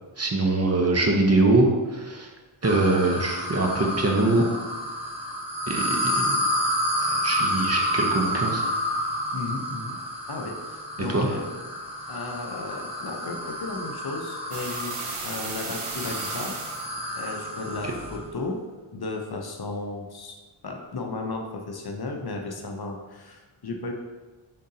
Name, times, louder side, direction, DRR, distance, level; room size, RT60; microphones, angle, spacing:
voice 1, 0.2-2.3 2.6-4.4 5.7-6.4 7.0-8.7 11.1-11.3, right 2 dB, 30° right, 1 dB, 0.7 m, -23 dB
sound 1, 2.6-18.3, equal, 10° right, 1.2 m, -30 dB
voice 2, 9.3-10.0 10.3-11.5 12.1-14.9 15.2-16.6 17.1-18.6 18.9-20.3 20.6-23.9, left 3 dB, 50° left, 2 dB, 0.7 m, -34 dB
sound 2, 14.5-16.9, right 4 dB, 80° right, 0.9 m, -35 dB
5.2 x 3.7 x 2.8 m, 1.2 s
cardioid pair, 50°, 49 cm